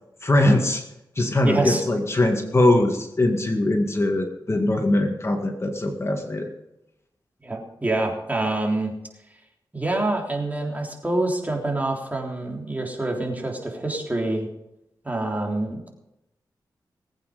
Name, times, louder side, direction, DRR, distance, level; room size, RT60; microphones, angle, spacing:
voice 1, 0.2-0.8 1.2-6.5, left 1 dB, 35° left, 3 dB, 2.0 m, -21 dB
voice 2, 1.4-1.8 7.4-8.9 9.7-14.5 15.0-15.9, right 2 dB, 20° right, 0 dB, 3.5 m, -26 dB
20.0 x 8.9 x 5.2 m, 0.87 s
cardioid pair, 70°, 8 cm